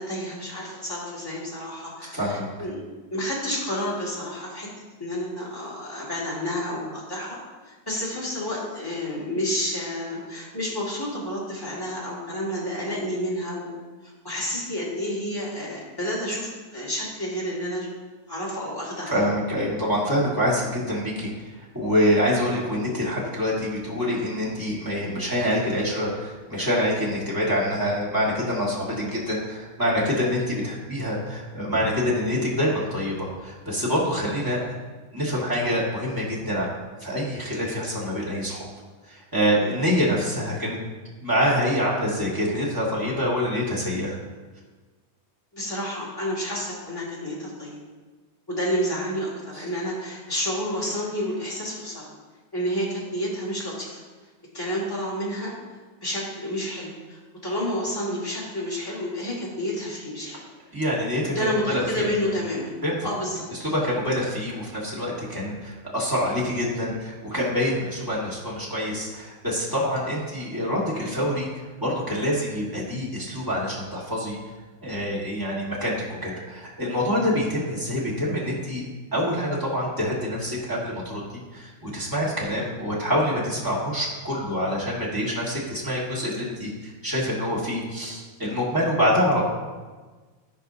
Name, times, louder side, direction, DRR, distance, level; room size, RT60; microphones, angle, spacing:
voice 1, 0.0-2.8 3.1-4.7 5.0-7.4 7.7-13.7 14.0-17.9 18.3-19.2 39.6-39.8 45.5-47.8 48.5-52.1 52.5-54.0 54.5-55.5 56.0-60.4 61.3-62.7 63.0-63.5, equal, 10° left, -7 dB, 1.7 m, -30 dB
voice 2, 2.1-2.5 19.1-21.3 21.7-34.8 35.1-36.7 37.0-38.7 39.0-40.8 41.2-44.2 60.7-62.1 62.8-63.0 63.6-71.5 71.8-74.4 74.8-78.8 79.1-89.4, equal, 15° right, -6 dB, 0.6 m, -26 dB
15.0 x 5.3 x 2.8 m, 1.3 s
omnidirectional pair, 3.6 m